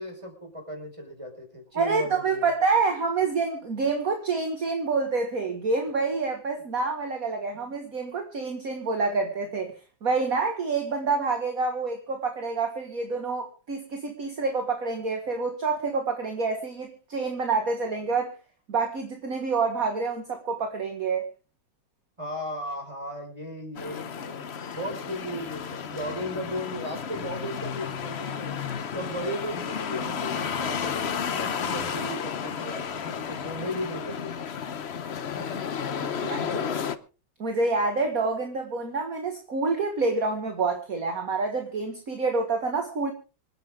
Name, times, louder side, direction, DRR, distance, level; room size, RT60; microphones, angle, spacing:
voice 1, 0.0-2.5 22.2-28.6 28.9-34.5 35.3-35.6 36.0-36.8, equal, 15° right, 5.1 m, -36 dB
voice 2, 1.7-9.7 10.0-18.4 18.7-21.3 36.2-36.4 37.4-43.1, right 4 dB, 45° right, 2.1 m, -27 dB
sound 1, 23.8-37.0, left 7 dB, 50° left, 0.8 m, -32 dB
26.0 x 9.6 x 3.6 m
omnidirectional pair, 2.1 m